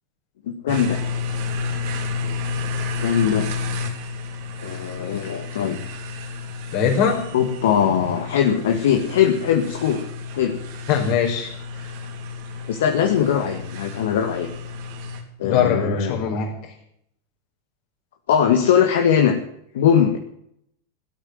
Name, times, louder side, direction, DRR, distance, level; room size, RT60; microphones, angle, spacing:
voice 1, 0.5-1.0 3.0-3.5 4.6-5.8 7.3-10.0 10.3-10.5 12.7-14.5 15.4-16.2 18.3-19.3 19.7-20.2, left 8 dB, 70° left, 4 dB, 2.0 m, -20 dB
sound 1, 0.7-15.2, left 4 dB, 60° right, 3.5 m, -31 dB
voice 2, 6.7-7.2 10.9-11.5 15.4-16.7, left 7 dB, 50° left, 2 dB, 5.6 m, -21 dB
17.5 x 8.7 x 9.2 m, 0.73 s
hypercardioid pair, 95°, 0 cm